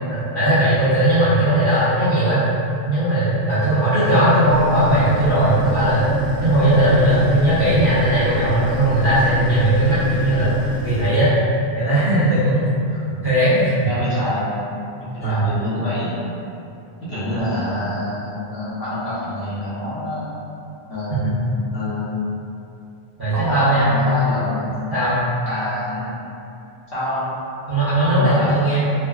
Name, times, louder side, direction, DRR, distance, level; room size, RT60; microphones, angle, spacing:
voice 1, 0.1-2.4 2.9-10.5 10.8-11.3 11.8-12.7 13.2-13.9 15.2-15.4 21.1-21.2 23.2-23.9 24.9-25.2 27.7-28.8, right 1 dB, 25° right, -14 dB, 0.7 m, -18 dB
sound 1, 4.5-11.1, right 2 dB, 60° right, 0.9 m, -29 dB
voice 2, 12.9-13.3 13.8-14.5 15.0-16.1 17.1-20.3 20.9-21.3 21.7-22.1 23.3-24.7 25.5-26.1 26.9-27.3 28.1-28.5, left 1 dB, 60° left, -12 dB, 1.1 m, -26 dB
3.2 x 2.1 x 2.3 m, 2.6 s
omnidirectional pair, 1.1 m